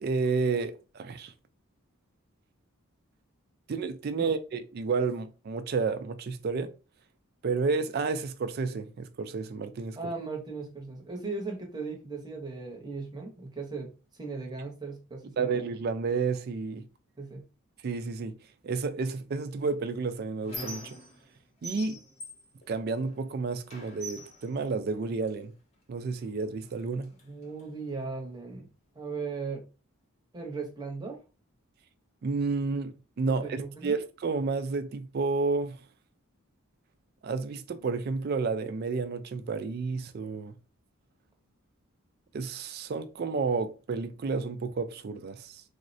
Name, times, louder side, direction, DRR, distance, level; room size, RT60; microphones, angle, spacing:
voice 1, 0.0-1.3 3.7-6.7 7.4-10.0 15.4-16.9 17.8-18.4 18.6-21.0 21.6-22.0 22.7-25.5 25.9-27.1 32.2-35.8 37.2-40.5 42.3-45.6, right 4 dB, 45° right, 0.3 m, -31 dB
voice 2, 10.0-15.5 17.2-17.4 27.2-28.7 28.9-29.7 30.3-31.2 33.4-33.9, right 4 dB, 20° right, 0.7 m, -37 dB
Squeak, 19.6-21.3 21.6-23.3 23.7-25.4 26.2-26.3 26.6-27.6, right 1 dB, 30° left, 0.7 m, -44 dB
3.5 x 2.0 x 2.6 m
head